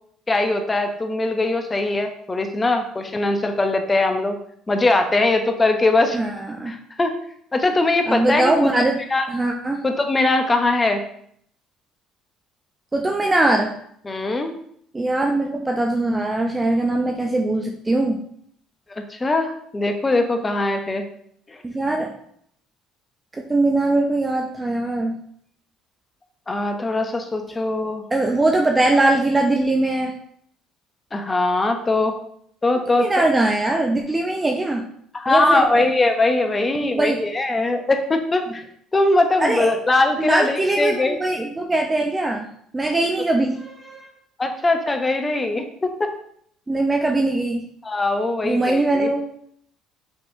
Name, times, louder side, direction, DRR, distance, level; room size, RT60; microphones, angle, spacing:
voice 1, 0.3-4.4 4.7-6.2 6.7-7.1 7.5-8.7 9.1-9.3 9.8-11.0 14.1-14.5 19.0-21.0 21.5-21.6 26.5-28.0 31.1-32.2 32.6-33.3 35.1-38.6 38.9-41.2 44.4-46.1 47.8-49.1, left 2 dB, 20° left, 5 dB, 0.8 m, -21 dB
voice 2, 6.1-6.7 8.1-9.0 9.3-9.8 12.9-13.7 14.9-18.2 21.6-22.1 23.3-25.2 28.1-30.1 33.0-34.9 35.3-35.9 36.8-37.2 39.4-39.7 40.2-42.4 42.7-44.1 46.7-47.7 48.4-49.2, right 2 dB, 20° right, 2 dB, 0.5 m, -21 dB
6.1 x 3.2 x 2.6 m, 0.66 s
supercardioid pair, 85°, 0 cm